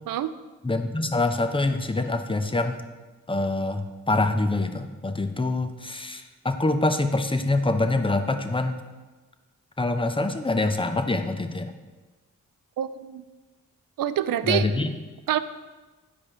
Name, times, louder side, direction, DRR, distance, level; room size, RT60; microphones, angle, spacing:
voice 1, 0.6-2.8 3.3-8.8 9.8-11.7 14.4-14.9, left 2 dB, 15° left, 7 dB, 0.7 m, -25 dB
voice 2, 12.8-13.2 14.0-14.7 15.3-15.4, right 11 dB, 75° right, 12 dB, 0.5 m, -26 dB
9.6 x 4.9 x 3.7 m, 1.2 s
cardioid pair, 50°, 34 cm